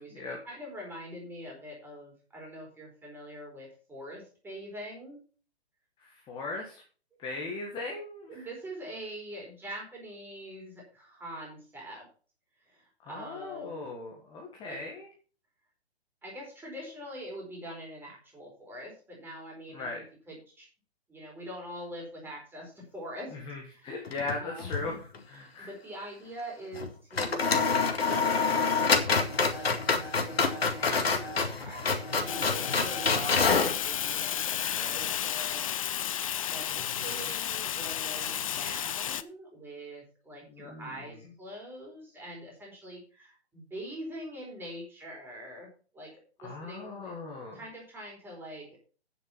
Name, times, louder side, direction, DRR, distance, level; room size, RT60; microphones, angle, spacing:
voice 1, 0.5-5.2 8.3-12.0 12.6-13.9 14.6-14.8 16.2-19.9 20.3-20.7 21.1-23.3 23.7-23.9 24.4-24.9 25.4-35.6 36.0-47.1 47.5-48.8, equal, 5° right, -2 dB, 4.3 m, -44 dB
voice 2, 6.0-6.8 7.2-8.5 13.0-15.1 19.7-20.1 23.3-25.7 32.3-32.7 34.7-35.1 36.7-37.3 40.4-41.0 46.4-47.6, left 3 dB, 15° left, 0 dB, 1.7 m, -39 dB
sound 1, 24.1-24.9 25.1-25.2 26.7-26.9 27.2-33.8, left 4 dB, 65° left, 2.1 m, -27 dB
Fire, 32.3-39.2, left 10 dB, 35° left, 0.5 m, -32 dB
9.5 x 7.5 x 5.6 m, 0.38 s
figure-of-eight pair, 130°, 32 cm